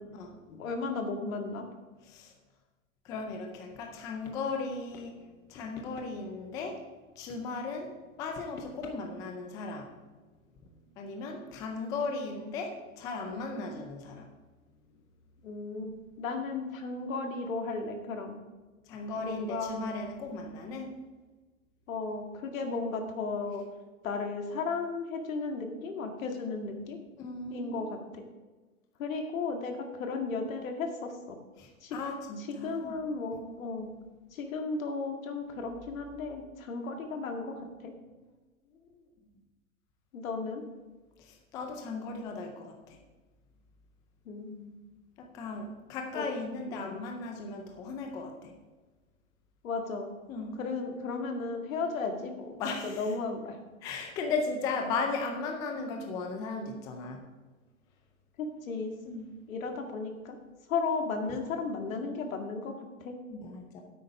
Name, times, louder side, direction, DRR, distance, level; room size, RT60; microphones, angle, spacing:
voice 1, 0.5-1.6 15.4-15.9 16.2-18.4 19.2-19.9 21.9-23.6 24.0-27.0 27.5-27.9 28.1-28.2 29.0-29.7 30.0-31.4 31.8-32.0 32.5-33.9 34.3-37.5 37.8-37.9 40.1-40.6 44.3-44.7 46.1-46.2 46.7-47.0 49.6-50.1 50.6-52.5 52.8-53.6 58.4-58.9 59.5-60.4 60.7-62.7 63.0-63.1, left 4 dB, 70° left, 4 dB, 2.1 m, -34 dB
voice 2, 3.0-6.8 7.2-7.9 8.2-9.9 11.0-14.3 18.9-20.9 27.2-27.9 31.6-32.9 41.2-43.0 45.2-48.5 50.3-50.6 52.6-53.1 53.8-57.2 59.0-59.3 63.3-63.8, left 4 dB, 10° left, 3 dB, 0.4 m, -36 dB
9.5 x 8.4 x 4.9 m, 1.3 s
hypercardioid pair, 135°, 42 cm